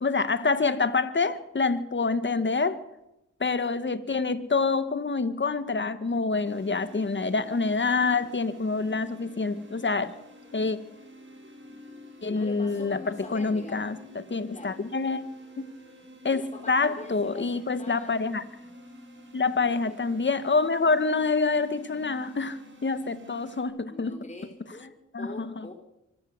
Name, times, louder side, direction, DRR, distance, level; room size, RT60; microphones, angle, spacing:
voice 1, 0.0-2.8 3.4-10.2 10.5-10.8 12.2-15.2 16.2-18.4 19.3-24.3 25.1-25.7, left 4 dB, 40° left, 12 dB, 1.8 m, -27 dB
sound 1, 6.4-23.6, equal, 40° right, 7.0 m, -49 dB
voice 2, 12.3-13.9 14.5-14.8 16.3-18.3 19.6-20.0 23.9-25.7, left 2 dB, 25° left, 2 dB, 4.1 m, -44 dB
25.0 x 14.0 x 8.1 m, 0.90 s
cardioid pair, 65°, 30 cm